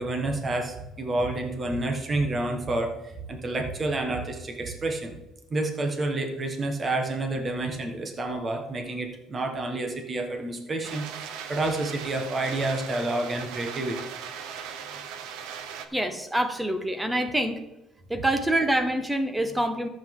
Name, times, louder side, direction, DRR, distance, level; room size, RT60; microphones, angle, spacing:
voice 1, 0.0-5.2 5.5-14.1, right 2 dB, 25° right, 4 dB, 1.3 m, -29 dB
sound 1, 10.8-15.9, right 7 dB, 80° right, 1.0 m, -38 dB
voice 2, 15.9-17.6 18.1-19.9, right 1 dB, 5° right, 8 dB, 0.9 m, -26 dB
14.0 x 7.6 x 3.7 m, 0.98 s
cardioid pair, 160°, 0 cm